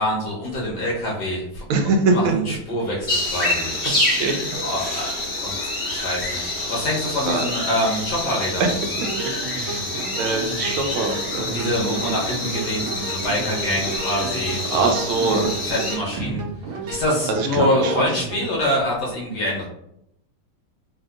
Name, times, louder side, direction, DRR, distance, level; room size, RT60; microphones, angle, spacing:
voice 1, 0.0-3.7 4.6-5.6 5.9-8.7 9.2-9.5 11.5-16.4 16.9-19.7, left 1 dB, 65° left, -4 dB, 1.2 m, -26 dB
voice 2, 1.7-2.3 4.1-4.3 4.8-5.3 7.3-7.4 8.6-8.7 9.0-12.0 14.7-15.5 16.1-16.4 16.9-17.0 17.3-18.1, right 3 dB, 90° right, 3 dB, 1.5 m, -24 dB
sound 1, 3.1-16.0, left 2 dB, 25° left, 1.5 m, -27 dB
sound 2, 8.9-18.5, right 3 dB, 70° right, 1.5 m, -33 dB
3.4 x 2.7 x 2.3 m, 0.77 s
omnidirectional pair, 2.2 m